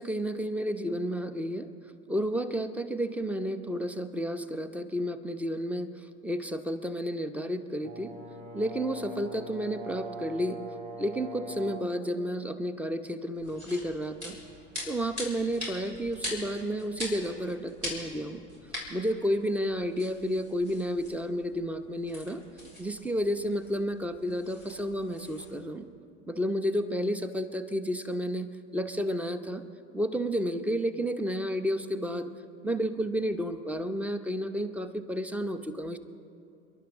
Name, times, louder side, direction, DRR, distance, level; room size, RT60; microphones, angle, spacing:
voice 1, 0.0-1.7 2.1-5.9 6.2-8.1 8.5-10.6 11.0-14.4 14.9-18.4 18.9-22.4 22.8-25.9 26.3-28.5 28.7-29.6 29.9-32.3 32.6-36.0, equal, 5° right, 11 dB, 0.9 m, -31 dB
Brass instrument, 7.8-12.0, right 2 dB, 30° right, 3.5 m, -42 dB
sound 1, 13.3-25.6, left 1 dB, 85° right, 4.3 m, -43 dB
29.5 x 11.5 x 3.7 m, 2.5 s
figure-of-eight pair, 75°, 33 cm